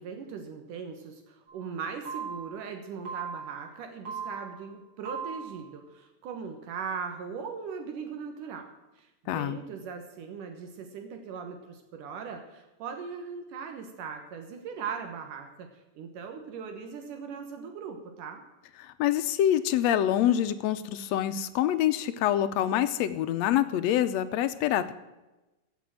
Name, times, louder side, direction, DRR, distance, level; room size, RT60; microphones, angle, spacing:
voice 1, 0.0-8.7 9.0-18.4, right 6 dB, 75° right, 5 dB, 2.8 m, -39 dB
sound 1, 1.5-1.6 2.1-2.6 3.1-3.6 4.1-4.6 5.1-5.6, right 6 dB, 35° right, 5.0 m, -38 dB
voice 2, 9.3-9.6 18.8-24.9, left 11 dB, 80° left, 11 dB, 1.6 m, -26 dB
15.5 x 7.0 x 7.5 m, 1.0 s
omnidirectional pair, 3.8 m